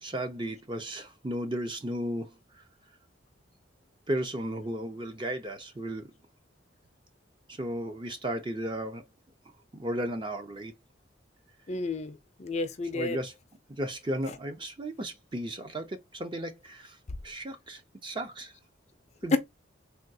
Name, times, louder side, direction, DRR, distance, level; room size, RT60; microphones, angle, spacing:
voice 1, 0.0-2.6 4.1-6.1 7.5-9.0 9.7-10.7 12.9-13.4 13.7-17.0 17.2-18.5 19.2-19.4, right 1 dB, 25° right, 0.6 m, -35 dB
voice 2, 11.7-13.2 19.3-19.4, left 3 dB, 35° left, 0.4 m, -30 dB
3.5 x 2.3 x 2.6 m
head